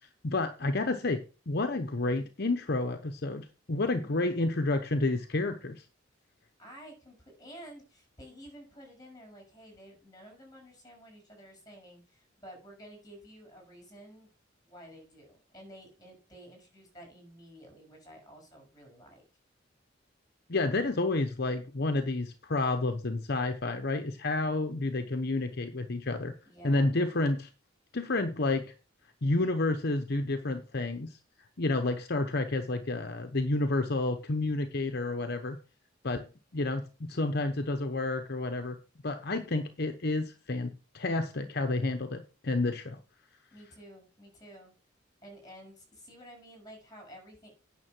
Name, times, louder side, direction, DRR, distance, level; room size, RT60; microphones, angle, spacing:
voice 1, 0.2-5.8 20.5-26.3 26.6-27.5 27.9-28.7 29.2-31.2 31.6-35.6 36.0-36.3 36.5-38.8 39.0-43.0, left 2 dB, 55° left, 7 dB, 0.9 m, -30 dB
voice 2, 3.8-4.5 6.6-14.3 14.7-19.2 26.4-26.9 43.5-44.7 45.2-47.6, equal, 20° left, 2 dB, 6.5 m, -51 dB
9.6 x 6.7 x 6.1 m, 0.34 s
head